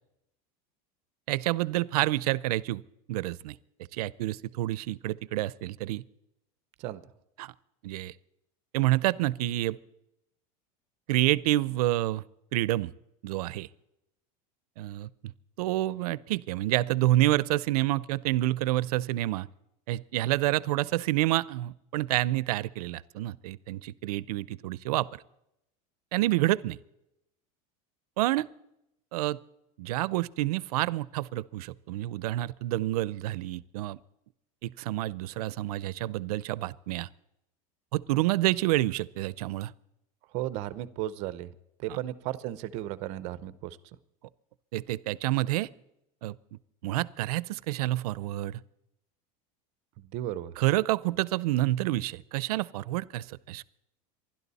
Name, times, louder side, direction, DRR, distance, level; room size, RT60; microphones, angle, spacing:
voice 1, 1.3-2.8 3.1-3.6 3.9-6.0 7.4-7.5 7.8-8.1 8.7-9.8 11.1-12.2 12.5-12.9 13.2-13.7 14.8-15.1 15.6-19.5 19.9-25.2 26.1-26.8 28.2-28.5 29.1-29.4 29.8-34.0 34.6-37.1 37.9-39.7 41.9-42.0 44.7-45.7 46.2-46.4 46.8-48.6 50.6-53.7, right 16 dB, 85° right, 21 dB, 0.6 m, -28 dB
voice 2, 40.3-41.5 41.8-43.8 50.0-50.5, right 13 dB, 35° right, 16 dB, 0.7 m, -35 dB
27.0 x 12.0 x 4.1 m, 0.84 s
supercardioid pair, 175°, 19 cm